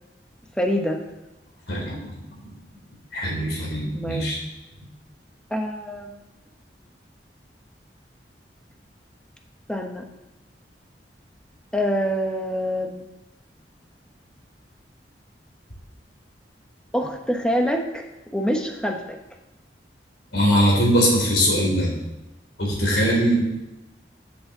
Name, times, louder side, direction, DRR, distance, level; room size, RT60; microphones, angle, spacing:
voice 1, 0.6-1.0 3.8-4.3 5.5-6.2 9.7-10.1 11.7-13.1 16.9-18.1 18.3-19.2 22.9-23.1, equal, 5° left, 3 dB, 1.1 m, -26 dB
voice 2, 1.7-2.2 3.1-4.4 20.3-21.9 22.6-23.5, equal, 75° left, -3 dB, 3.9 m, -21 dB
8.1 x 6.5 x 7.3 m, 0.97 s
head